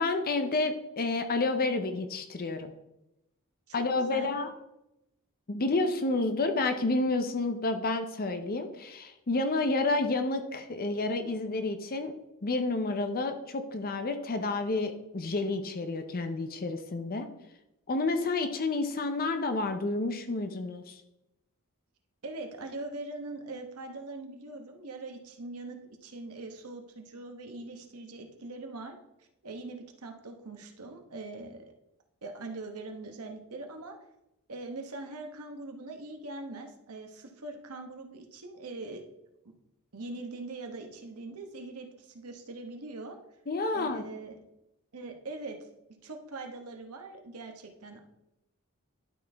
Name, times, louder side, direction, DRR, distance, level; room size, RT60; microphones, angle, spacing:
voice 1, 0.0-2.7 3.7-4.5 5.5-12.1 12.4-17.3 17.9-21.0 43.5-44.0, left 3 dB, 45° left, 8 dB, 0.6 m, -30 dB
voice 2, 22.2-28.9 29.4-31.6 32.2-33.9 34.5-39.0 39.9-43.2 43.7-44.4 44.9-45.6 46.0-48.0, right 2 dB, 90° right, 4 dB, 1.1 m, -42 dB
11.5 x 4.3 x 3.4 m, 0.88 s
head